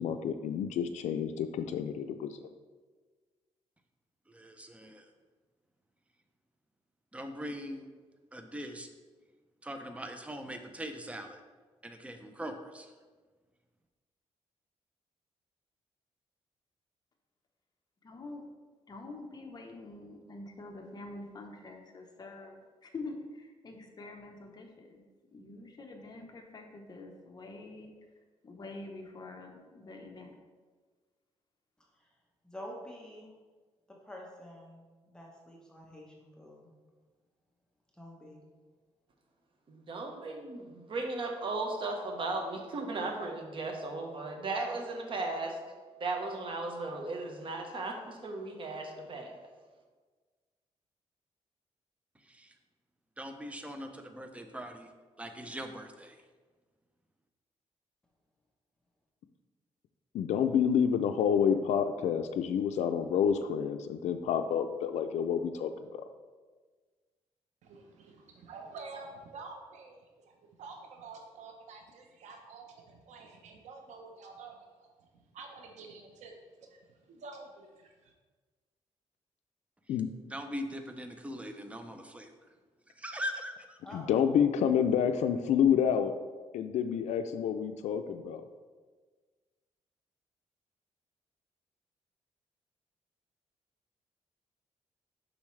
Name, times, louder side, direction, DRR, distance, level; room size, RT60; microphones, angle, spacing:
voice 1, 0.0-2.4 60.1-66.1 79.9-80.1 83.9-86.1 86.5-88.5, left 8 dB, 80° left, 7 dB, 0.4 m, -28 dB
voice 2, 4.3-5.1 7.1-7.9 8.3-8.9 9.6-11.4 11.8-12.9 52.1-52.5 53.2-54.9 55.2-56.2 80.3-82.3 82.9-83.8, equal, 10° right, 6 dB, 0.6 m, -41 dB
voice 3, 18.0-18.4 18.9-25.0 25.3-27.9 28.4-30.4, left 2 dB, 35° left, 3 dB, 0.9 m, -46 dB
voice 4, 32.4-33.3 33.9-36.7 37.9-38.5 83.8-84.3, equal, 5° left, -3 dB, 1.0 m, -48 dB
voice 5, 39.7-45.6 46.0-49.4, right 3 dB, 45° right, 2 dB, 1.1 m, -36 dB
voice 6, 67.6-74.6 75.3-76.8 77.1-78.1, right 3 dB, 90° right, 3 dB, 0.8 m, -49 dB
7.0 x 5.4 x 3.2 m, 1.4 s
cardioid pair, 125°, 12 cm